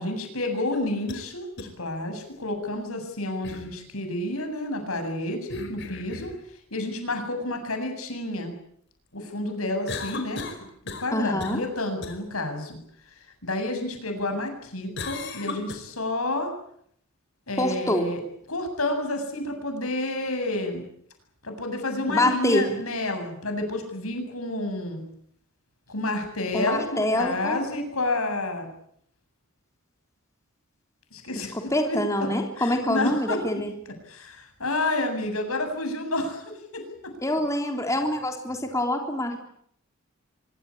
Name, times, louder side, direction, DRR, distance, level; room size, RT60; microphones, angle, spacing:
voice 1, 0.0-6.3 6.7-8.5 9.1-10.5 11.0-12.8 13.4-16.5 17.5-18.2 18.5-20.8 21.4-25.0 25.9-28.7 31.1-32.3 32.6-33.4 34.1-37.1, left 2 dB, 85° left, 6 dB, 7.6 m, -30 dB
sound 1, 0.7-1.2 1.6-1.7 3.4-3.7 5.5-6.4 9.9-11.2 11.4-11.7 12.0-12.2 15.0-15.8, left 3 dB, 55° left, 5.0 m, -36 dB
voice 2, 11.1-11.6 17.6-18.1 22.1-22.7 26.5-27.6 31.4-33.7 37.2-39.4, left 1 dB, 15° left, 3 dB, 3.5 m, -26 dB
25.0 x 23.5 x 8.6 m, 0.68 s
head